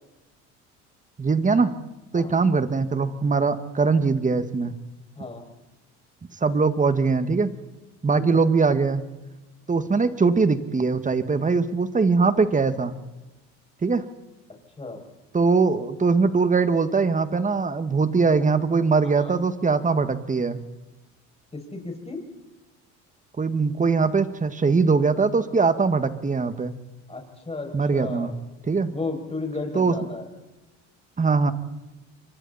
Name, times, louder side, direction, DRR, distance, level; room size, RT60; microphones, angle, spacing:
voice 1, 1.2-1.7 2.1-4.8 6.4-7.5 8.0-9.0 9.7-13.0 13.8-14.1 15.3-20.6 23.4-26.7 27.7-28.3 28.7-28.9 29.8-29.9 31.2-31.5, right 4 dB, 20° right, 10 dB, 1.9 m, -21 dB
voice 2, 8.1-8.4 14.8-15.0 19.0-19.4 21.5-22.2 27.1-28.4 28.9-30.3, left 3 dB, 20° left, 2 dB, 6.9 m, -34 dB
29.0 x 24.5 x 4.3 m, 1.0 s
supercardioid pair, 85°, 34 cm